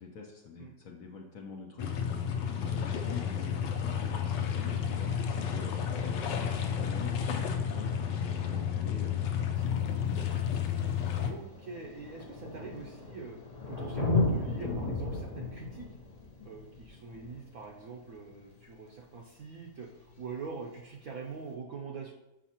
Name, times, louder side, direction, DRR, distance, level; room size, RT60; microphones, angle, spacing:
voice 1, 0.0-7.2 7.5-9.2 9.6-10.4, left 5 dB, 60° left, 1 dB, 1.0 m, -46 dB
sound 1, 1.8-11.3, left 8 dB, 90° left, 1.3 m, -31 dB
Thunder, 9.6-9.7 10.7-10.8 11.0-18.3 20.0-20.1, left 3 dB, 40° left, 0.5 m, -34 dB
voice 2, 11.1-13.4 13.7-15.9 16.4-22.1, right 5 dB, 65° right, -2 dB, 1.0 m, -43 dB
7.3 x 5.5 x 2.9 m, 0.96 s
omnidirectional pair, 1.9 m